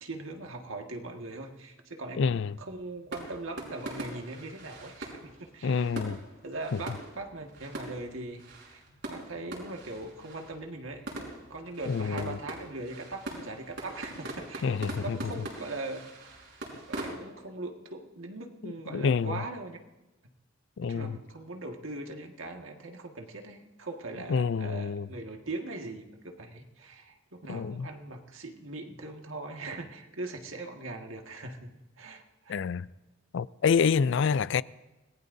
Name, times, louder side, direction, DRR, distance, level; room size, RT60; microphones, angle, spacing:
voice 1, 0.0-5.9 6.4-8.8 9.1-11.1 11.5-16.1 16.9-19.8 20.8-31.7 32.0-32.6, right 2 dB, 85° right, 1.8 m, -40 dB
voice 2, 2.2-2.6 5.6-6.2 6.7-6.8 11.9-12.4 14.6-15.3 18.6-19.4 20.8-21.2 24.3-25.1 27.5-27.9 32.5-32.9 33.3-34.6, left 6 dB, 65° left, 0.4 m, -27 dB
sound 1, 2.3-17.1, right 1 dB, 65° right, 5.0 m, -43 dB
26.5 x 19.5 x 2.7 m
head